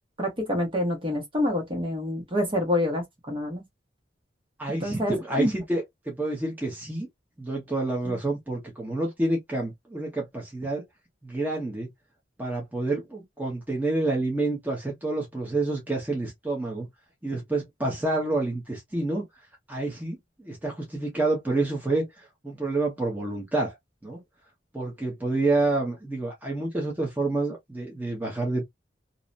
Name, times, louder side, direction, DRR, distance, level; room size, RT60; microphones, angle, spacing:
voice 1, 0.2-3.6 4.7-5.6 8.0-8.2, left 1 dB, 30° right, 1.0 m, -27 dB
voice 2, 4.6-7.1 7.4-10.8 11.2-11.9 12.4-16.9 17.2-19.3 19.7-23.7 24.0-24.2 24.7-28.7, right 2 dB, 10° right, 0.8 m, -28 dB
2.8 x 2.1 x 2.4 m
head